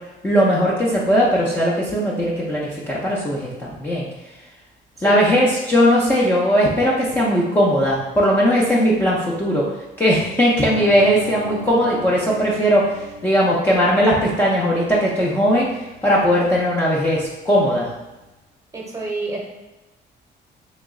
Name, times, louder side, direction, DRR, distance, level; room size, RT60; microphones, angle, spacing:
voice 1, 0.2-4.1 5.0-9.7 10.0-12.9 13.2-15.7 16.0-17.9, equal, 10° left, -6 dB, 0.5 m, -18 dB
sound 1, 10.6-18.3, left 1 dB, 75° left, 1.2 m, -39 dB
voice 2, 18.7-19.4, right 3 dB, 15° right, -2 dB, 0.8 m, -28 dB
3.0 x 2.9 x 3.6 m, 1.0 s
cardioid pair, 155°, 19 cm